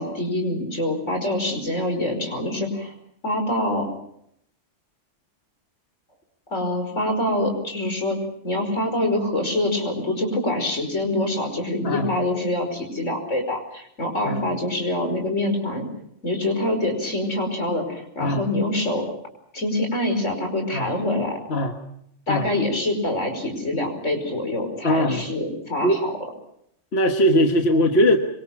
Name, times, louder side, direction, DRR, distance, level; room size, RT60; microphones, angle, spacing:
voice 1, 0.0-2.9 3.2-3.9 6.5-8.2 8.4-15.9 16.2-19.1 19.5-21.4 22.3-26.1, left 1 dB, 85° left, 4 dB, 5.7 m, -25 dB
voice 2, 24.8-25.2 25.8-26.0 26.9-28.2, equal, 60° left, 4 dB, 1.7 m, -20 dB
26.0 x 25.0 x 5.9 m, 0.73 s
omnidirectional pair, 1.2 m